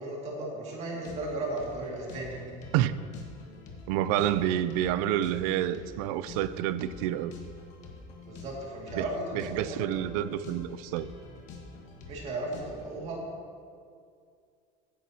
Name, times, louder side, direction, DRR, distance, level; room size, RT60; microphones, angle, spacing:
voice 1, 0.0-2.4 8.2-9.8 12.1-13.2, right 2 dB, 40° right, 2.2 m, -35 dB
sound 1, 0.8-13.0, left 3 dB, 45° left, 1.5 m, -47 dB
voice 2, 3.9-7.3 9.0-9.1 9.3-11.1, right 12 dB, 85° right, 0.5 m, -28 dB
15.5 x 9.9 x 2.8 m
cardioid pair, 175°, 18 cm